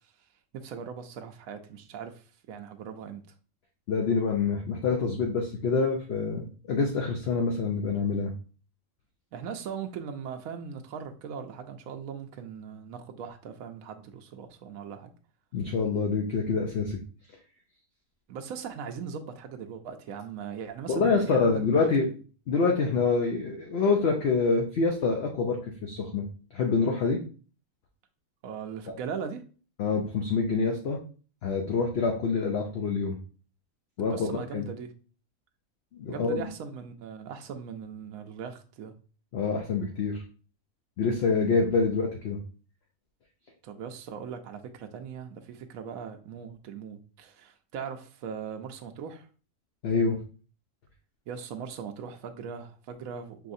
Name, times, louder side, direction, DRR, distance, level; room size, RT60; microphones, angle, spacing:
voice 1, 0.5-3.2 9.3-15.1 18.3-22.1 28.4-29.4 34.0-34.9 36.1-38.9 43.6-49.3 51.3-53.5, right 6 dB, 80° right, 1.0 m, -39 dB
voice 2, 3.9-8.3 15.5-17.0 20.9-22.1 22.5-26.3 26.5-27.2 29.8-31.0 31.4-33.2 34.0-34.7 35.9-36.5 39.3-40.2 41.0-42.4 49.8-50.2, left 4 dB, 55° left, 0.8 m, -26 dB
5.7 x 3.1 x 2.6 m
omnidirectional pair, 1.5 m